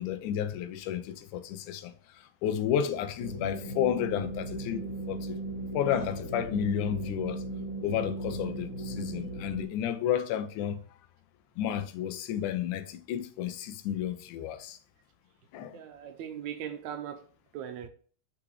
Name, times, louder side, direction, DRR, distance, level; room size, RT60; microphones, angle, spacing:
voice 1, 0.0-5.4 5.7-7.4 7.8-10.8 11.6-14.8 15.5-15.8, left 10 dB, 85° left, 2.2 m, -32 dB
sound 1, 3.2-9.6, right 2 dB, 45° left, 2.0 m, -37 dB
voice 2, 15.7-17.2 17.5-17.9, right 9 dB, 80° right, 1.9 m, -39 dB
6.1 x 6.0 x 3.3 m
omnidirectional pair, 3.6 m